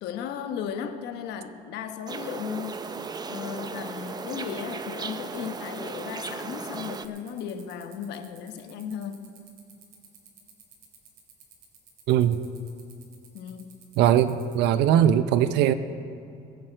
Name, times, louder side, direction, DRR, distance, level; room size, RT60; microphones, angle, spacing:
voice 1, 0.0-2.9 3.3-9.3 13.3-13.8, left 8 dB, 85° left, 7 dB, 1.0 m, -36 dB
sound 1, 2.1-7.1, right 4 dB, 25° right, 0.5 m, -36 dB
sound 2, 2.6-14.7, right 8 dB, 65° right, 2.9 m, -52 dB
voice 2, 12.1-12.4 14.0-15.7, right 10 dB, 85° right, 12 dB, 0.6 m, -20 dB
22.0 x 7.9 x 4.5 m, 2.6 s
cardioid pair, 110°, 17 cm